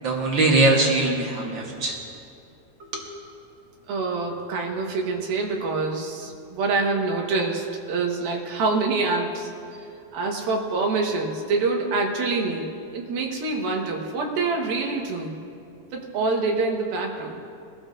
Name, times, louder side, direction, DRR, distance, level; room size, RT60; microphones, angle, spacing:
voice 1, 0.0-2.0 2.8-3.0, right 2 dB, 60° right, -1 dB, 1.3 m, -21 dB
voice 2, 3.9-9.9 10.1-15.4 15.9-17.4, right 3 dB, 90° right, 0 dB, 3.3 m, -26 dB
23.0 x 13.0 x 2.6 m, 2.6 s
omnidirectional pair, 4.1 m